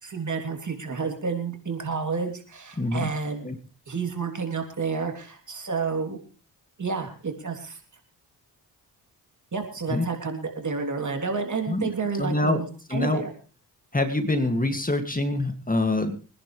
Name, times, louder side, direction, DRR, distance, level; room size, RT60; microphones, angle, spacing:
voice 1, 0.0-3.5 3.9-6.2 6.8-7.8 9.5-13.3, right 5 dB, 45° right, 3 dB, 3.4 m, -30 dB
voice 2, 2.8-3.1 3.4-3.5 9.9-10.1 11.7-11.9 12.2-12.6 12.9-13.2 13.9-16.2, left 2 dB, 20° left, 6 dB, 2.3 m, -25 dB
24.5 x 11.0 x 3.3 m, 0.36 s
cardioid pair, 60°, 40 cm